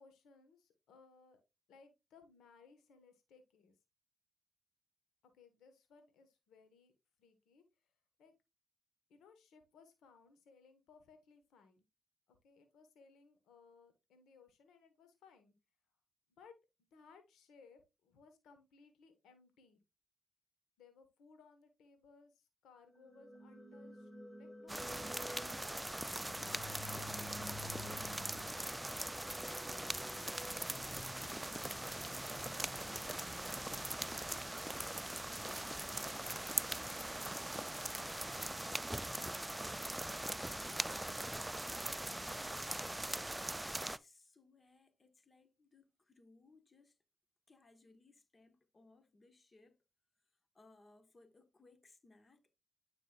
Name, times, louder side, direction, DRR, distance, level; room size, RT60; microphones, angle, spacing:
voice 1, 0.0-1.4 1.7-3.8 5.3-6.9 7.2-7.9 8.2-8.3 9.1-11.8 12.3-15.5 16.4-16.6 16.9-19.8 20.8-24.1 24.4-25.9 26.4-26.6 26.9-28.0 28.3-28.8 29.5-33.3 33.9-35.0 35.6-37.1, left 5 dB, 80° left, 1.3 m, -63 dB
sound 1, 22.9-34.8, left 2 dB, 15° left, 1.4 m, -53 dB
sound 2, 24.7-44.0, right 1 dB, 10° right, 0.4 m, -41 dB
voice 2, 42.4-42.8 43.2-47.0 47.5-49.8 50.5-52.5, left 3 dB, 35° left, 1.2 m, -65 dB
9.5 x 5.0 x 2.4 m
supercardioid pair, 55°, 0 cm